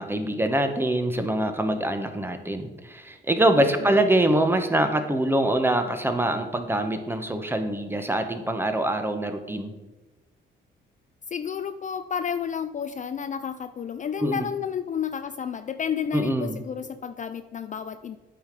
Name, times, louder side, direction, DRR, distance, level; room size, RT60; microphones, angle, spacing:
voice 1, 0.0-9.7 14.2-14.5 16.1-16.6, right 1 dB, 10° right, 7 dB, 1.0 m, -24 dB
voice 2, 11.3-18.2, left 7 dB, 40° left, 11 dB, 0.4 m, -31 dB
8.8 x 5.0 x 5.2 m, 1.1 s
cardioid pair, 90°, 20 cm